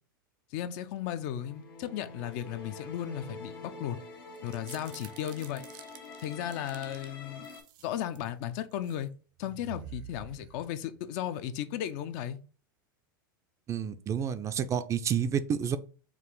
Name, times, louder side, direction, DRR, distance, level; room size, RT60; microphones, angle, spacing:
voice 1, 0.5-4.0 4.4-5.6 6.2-7.5 7.8-9.1 9.4-12.4, left 11 dB, 55° left, 0.5 m, -35 dB
sound 1, 1.0-7.6, left 3 dB, 85° left, 1.3 m, -46 dB
sound 2, 4.3-7.1 7.4-8.3 8.7-9.0 9.4-11.0, right 11 dB, 60° right, 0.7 m, -49 dB
voice 2, 13.7-15.8, right 8 dB, 25° right, 0.4 m, -29 dB
4.8 x 2.5 x 3.7 m
hypercardioid pair, 100°, 11 cm